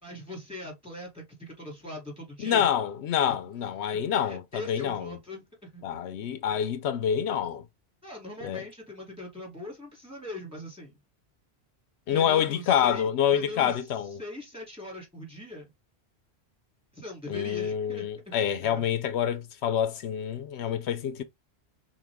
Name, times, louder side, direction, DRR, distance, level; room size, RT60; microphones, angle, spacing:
voice 1, 0.0-2.7 3.3-3.4 3.9-5.8 8.0-11.0 12.1-13.8 14.2-15.7 16.9-18.3 18.6-18.8, left 2 dB, 5° right, 2.7 m, -41 dB
voice 2, 2.4-5.2 5.8-7.6 8.4-8.6 12.1-14.2 17.3-21.2, left 9 dB, 85° left, 0.9 m, -27 dB
5.9 x 2.6 x 3.5 m
omnidirectional pair, 1.1 m